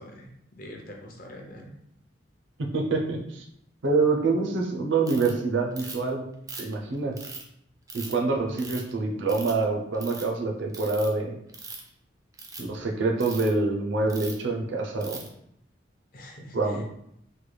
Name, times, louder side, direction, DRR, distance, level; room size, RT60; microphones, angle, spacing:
voice 1, 0.0-1.7 16.1-16.8, left 1 dB, 45° left, 1 dB, 0.5 m, -44 dB
voice 2, 2.6-3.4 3.8-6.2 6.6-7.1 7.9-11.4 12.6-15.2 16.5-16.8, right 3 dB, 75° right, 1 dB, 0.6 m, -26 dB
Ratchet pawl, 5.1-5.3 5.8-6.1 6.5-7.4 7.9-8.1 8.6-8.9 9.3-9.6 9.9-10.2 10.7-11.1 11.5-11.9 12.3-12.6 13.2-13.5 14.1-14.4 15.0-15.3, right 4 dB, 20° right, 0.3 m, -40 dB
3.3 x 2.2 x 3.2 m, 0.74 s
head